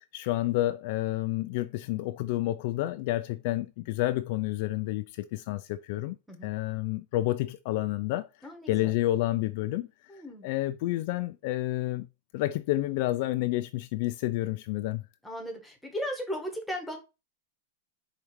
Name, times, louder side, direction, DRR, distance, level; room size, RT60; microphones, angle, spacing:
voice 1, 0.1-6.2 6.4-8.3 8.7-9.9 10.4-12.1 12.3-15.0, left 16 dB, 50° left, 0.3 m, -29 dB
voice 2, 8.4-8.9 10.1-10.5 15.2-17.0, equal, ahead, 1.1 m, -36 dB
4.9 x 3.2 x 3.1 m
supercardioid pair, 160°, 0 cm